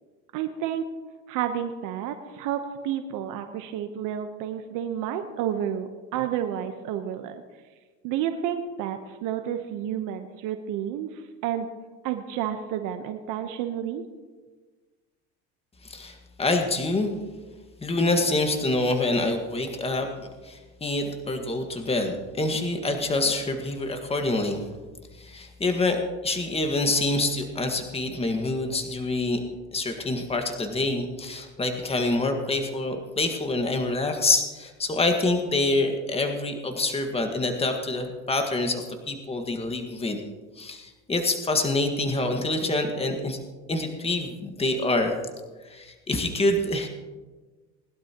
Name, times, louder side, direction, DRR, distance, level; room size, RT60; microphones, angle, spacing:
voice 1, 0.3-0.8 1.3-7.4 8.0-11.7 12.0-14.0, right 10 dB, 60° right, 6 dB, 1.1 m, -30 dB
voice 2, 15.8-17.1 17.8-20.1 20.4-24.6 25.2-29.4 29.7-40.2 40.6-43.4 43.7-45.1 45.6-46.9, left 2 dB, 15° left, 5 dB, 1.7 m, -26 dB
20.0 x 11.5 x 3.0 m, 1.3 s
supercardioid pair, 100°, 35 cm